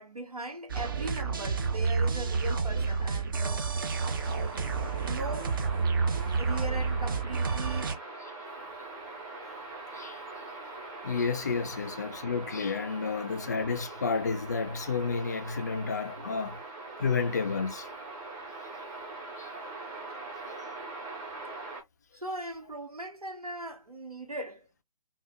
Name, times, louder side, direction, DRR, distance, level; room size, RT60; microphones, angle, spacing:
voice 1, 0.0-3.8 5.0-5.5 6.4-8.0 16.2-16.3 22.1-24.7, right 1 dB, 80° right, 1.2 m, -39 dB
sound 1, 0.7-7.9, right 4 dB, 35° right, 0.6 m, -29 dB
sound 2, 4.0-21.8, right 3 dB, 15° right, 0.8 m, -42 dB
voice 2, 10.7-16.6 17.0-17.9 19.4-19.5, left 5 dB, 30° left, 0.4 m, -31 dB
3.3 x 2.3 x 2.8 m
figure-of-eight pair, 145°, 19 cm